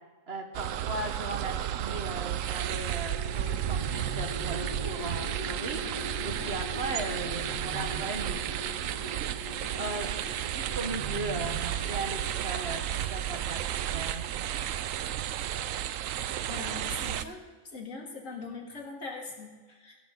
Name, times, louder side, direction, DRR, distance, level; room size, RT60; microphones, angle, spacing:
voice 1, 0.3-5.8 6.2-8.6 9.8-10.1 10.5-12.8 13.1-13.6 13.9-14.7, right 2 dB, 50° right, 3 dB, 1.7 m, -37 dB
sound 1, 0.5-17.2, right 11 dB, 75° right, 1.0 m, -33 dB
sound 2, 2.6-14.9, equal, 25° left, 3.0 m, -43 dB
sound 3, 3.0-4.8 6.7-8.5 10.4-12.3, left 1 dB, 35° right, 5.5 m, -46 dB
voice 2, 16.5-17.5 17.7-20.0, left 3 dB, 70° left, 0 dB, 2.8 m, -41 dB
17.5 x 15.0 x 3.9 m, 1.4 s
omnidirectional pair, 1.4 m